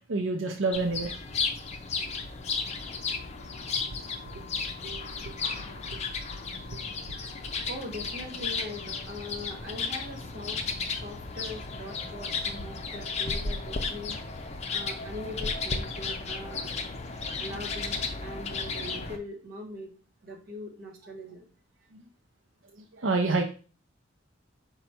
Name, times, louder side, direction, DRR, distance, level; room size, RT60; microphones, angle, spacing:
voice 1, 0.1-1.1 4.8-5.3 5.9-6.0 6.7-6.8 21.9-22.0 23.0-23.4, right 3 dB, 85° right, 3 dB, 0.6 m, -28 dB
sound 1, 0.7-19.2, left 4 dB, 35° left, 0.5 m, -34 dB
voice 2, 7.7-10.6 11.0-16.7 17.4-19.9 20.2-21.4, left 1 dB, 50° right, 2 dB, 1.4 m, -41 dB
5.2 x 2.3 x 4.3 m, 0.36 s
head